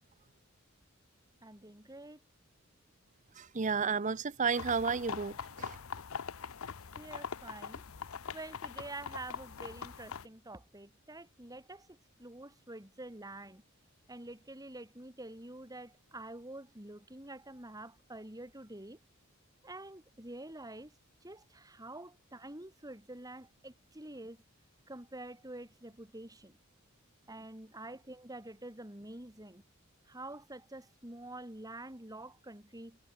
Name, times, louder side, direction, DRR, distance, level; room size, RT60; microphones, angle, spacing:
voice 1, 1.4-2.2 7.0-7.8 8.3-13.6 14.1-19.0 19.6-21.0 21.2-24.4 24.9-26.6 27.3-29.6 30.1-33.0, right 2 dB, 15° right, 3.6 m, -47 dB
voice 2, 3.4-5.8, right 5 dB, 35° right, 0.7 m, -32 dB
sound 1, 4.6-10.3, left 6 dB, 75° left, 0.8 m, -43 dB
head